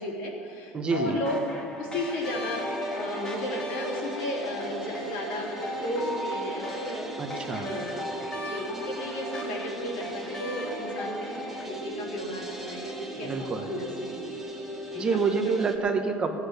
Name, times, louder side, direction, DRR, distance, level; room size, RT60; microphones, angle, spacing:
voice 1, 0.0-1.4 1.8-7.1 7.5-8.1 8.4-14.2 14.9-15.2, left 1 dB, 75° left, -2 dB, 3.3 m, -34 dB
voice 2, 0.7-1.2 7.2-7.7 13.2-13.7 15.0-16.4, right 4 dB, 20° right, 5 dB, 0.9 m, -27 dB
sound 1, 0.9-11.7, equal, 20° left, 1.8 m, -37 dB
sound 2, 2.2-15.8, right 1 dB, 5° right, 1.3 m, -39 dB
16.5 x 8.2 x 6.7 m, 2.6 s
cardioid pair, 160°, 4 cm